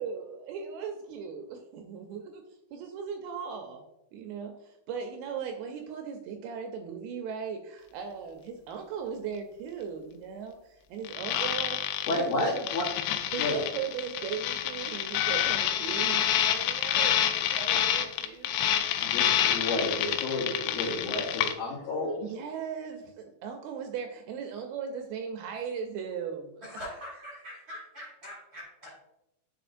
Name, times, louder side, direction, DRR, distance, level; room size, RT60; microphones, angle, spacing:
voice 1, 0.0-2.4 2.7-11.8 12.1-12.7 13.3-18.6 22.2-26.6, right 7 dB, 80° right, 4 dB, 2.3 m, -38 dB
sound 1, 11.0-21.5, left 10 dB, 90° left, 2.7 m, -28 dB
voice 2, 12.1-12.9 13.4-13.6 19.0-22.1, left 2 dB, 65° left, -4 dB, 2.4 m, -31 dB
voice 3, 26.6-29.0, left 1 dB, 45° right, -5 dB, 1.6 m, -43 dB
9.9 x 4.5 x 2.5 m, 0.88 s
omnidirectional pair, 4.7 m